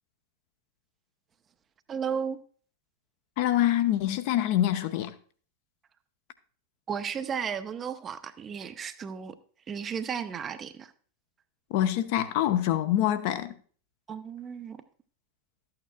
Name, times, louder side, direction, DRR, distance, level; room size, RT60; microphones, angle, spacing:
voice 1, 1.9-2.4 6.9-9.3 9.7-10.9 14.1-14.8, right 7 dB, 25° right, 0.6 m, -34 dB
voice 2, 3.4-5.1 11.7-13.5, left 12 dB, 45° left, 0.7 m, -25 dB
12.5 x 8.7 x 2.3 m
figure-of-eight pair, 90°, 0 cm